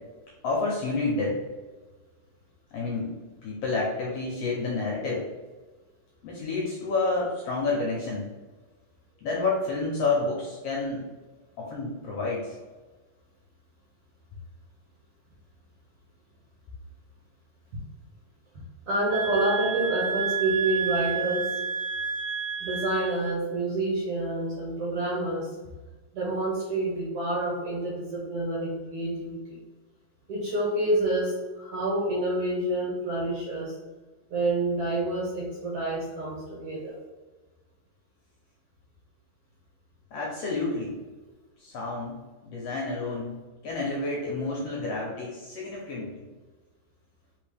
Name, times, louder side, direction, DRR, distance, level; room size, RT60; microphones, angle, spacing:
voice 1, 0.4-1.4 2.7-3.1 3.4-5.2 6.2-8.3 9.2-11.1 11.6-12.5 40.1-41.0 41.6-43.4 43.6-46.3, left 3 dB, 70° left, -4 dB, 1.6 m, -29 dB
voice 2, 18.9-21.5 22.6-25.5 26.1-29.6 30.3-33.8 34.3-37.0, right 2 dB, 65° right, -5 dB, 1.5 m, -28 dB
sound 1, 19.1-23.4, right 6 dB, 85° right, 1.5 m, -30 dB
3.9 x 3.9 x 3.3 m, 1.3 s
omnidirectional pair, 3.6 m